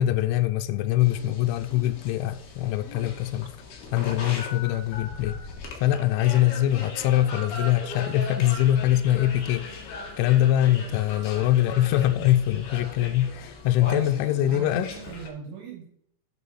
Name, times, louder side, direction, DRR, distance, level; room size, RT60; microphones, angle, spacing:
voice 1, 0.0-3.5 3.9-5.4 5.8-9.9 10.2-14.9, left 13 dB, 90° left, 2.9 m, -23 dB
sound 1, 1.0-15.3, left 3 dB, 65° left, 3.5 m, -39 dB
voice 2, 13.9-15.8, right 6 dB, 75° right, 3.5 m, -38 dB
9.5 x 5.3 x 5.6 m
omnidirectional pair, 5.2 m